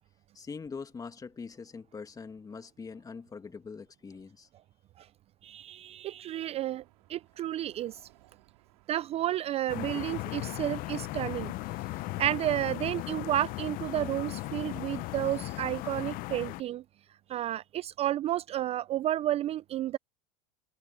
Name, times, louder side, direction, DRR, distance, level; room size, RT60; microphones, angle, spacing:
voice 1, 0.3-4.5 9.9-10.0, left 5 dB, 20° left, 2.2 m, -43 dB
voice 2, 5.4-6.8 7.1-8.0 8.9-11.5 12.2-16.8 17.3-20.0, right 13 dB, 30° right, 0.4 m, -31 dB
sound 1, 6.8-15.0, right 20 dB, 75° right, 5.2 m, -62 dB
sound 2, 9.7-16.6, left 19 dB, 45° left, 0.8 m, -37 dB
supercardioid pair, 110°, 20 cm